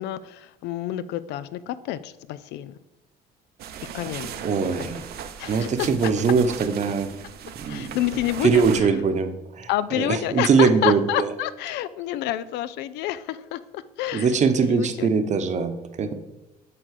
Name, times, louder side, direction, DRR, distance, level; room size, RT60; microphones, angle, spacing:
voice 1, 0.0-2.7 3.9-4.3 4.8-5.0 5.4-5.9 7.7-8.6 9.7-14.4 14.6-15.1, left 13 dB, 85° left, 15 dB, 0.5 m, -28 dB
sound 1, 3.6-8.8, right 8 dB, 70° right, 0.8 m, -37 dB
voice 2, 4.4-5.0 5.5-7.1 7.5-8.0 8.4-9.7 10.0-11.3 14.1-16.1, right 5 dB, 45° right, 8 dB, 0.9 m, -22 dB
8.5 x 3.8 x 6.5 m, 0.95 s
cardioid pair, 110°, 17 cm